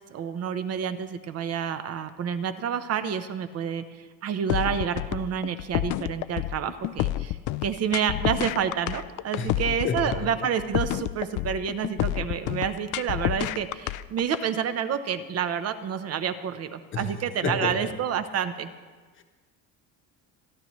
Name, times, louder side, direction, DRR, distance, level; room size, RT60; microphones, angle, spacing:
voice 1, 0.1-18.7, right 8 dB, 45° right, 10 dB, 0.9 m, -29 dB
sound 1, 4.5-14.4, left 14 dB, 60° left, 0.5 m, -29 dB
voice 2, 9.8-10.3 16.9-17.1 17.4-17.9 19.2-19.3, left 4 dB, 35° left, 5 dB, 1.2 m, -30 dB
26.0 x 11.5 x 3.2 m, 1.4 s
cardioid pair, 150°, 34 cm